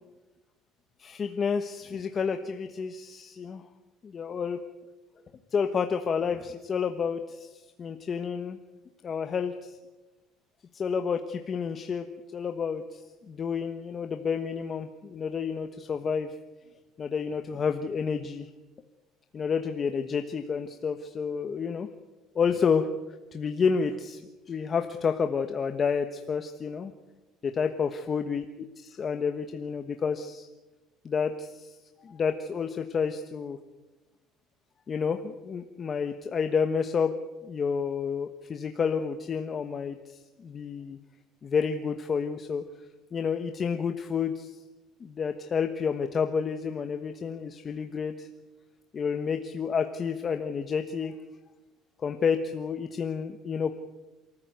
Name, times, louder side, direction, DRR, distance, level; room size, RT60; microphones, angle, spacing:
voice 1, 1.0-3.6 4.0-4.6 5.5-8.6 9.0-9.8 10.7-16.3 17.0-18.5 19.3-21.9 22.3-22.9 23.3-24.2 24.5-26.9 27.4-28.4 28.8-30.5 31.0-31.8 32.0-33.6 34.9-41.0 41.4-42.6 43.1-44.6 45.0-48.3 48.9-51.1 52.0-53.7, left 6 dB, 30° left, 7 dB, 1.2 m, -30 dB
28.0 x 14.5 x 9.3 m, 1.1 s
cardioid pair, 140°, 0 cm